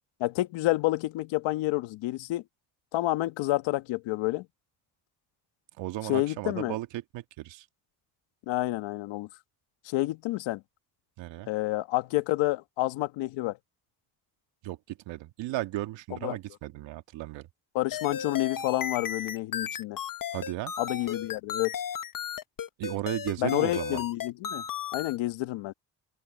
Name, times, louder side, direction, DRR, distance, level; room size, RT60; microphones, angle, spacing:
voice 1, 0.2-2.4 2.9-4.5 6.1-6.8 8.5-9.3 9.8-10.6 11.5-13.6 16.2-16.4 17.7-20.0 20.8-21.8 23.4-24.6 24.9-25.7, left 18 dB, 85° left, 1.4 m, -29 dB
voice 2, 5.8-7.7 11.2-11.5 14.6-17.5 20.3-20.7 22.8-24.0, right 16 dB, 85° right, 2.0 m, -35 dB
sound 1, 17.9-25.2, left 8 dB, 50° left, 1.3 m, -35 dB
open air
supercardioid pair, 50°, 43 cm